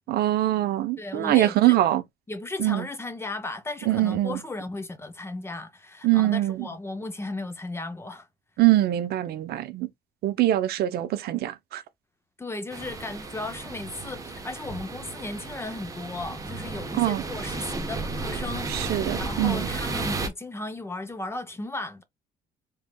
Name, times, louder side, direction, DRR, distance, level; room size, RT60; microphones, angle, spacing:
voice 1, 0.1-2.0 2.6-2.9 3.9-4.4 6.0-6.7 8.6-9.9 10.2-11.8 16.9-17.2 18.7-19.7, right 14 dB, 70° right, 0.6 m, -23 dB
voice 2, 1.0-1.8 2.3-8.3 12.4-18.8 19.2-22.0, left 2 dB, 15° left, 0.6 m, -35 dB
sound 1, 12.7-20.3, right 3 dB, 20° right, 0.9 m, -33 dB
3.5 x 3.3 x 2.2 m
cardioid pair, 110°, 17 cm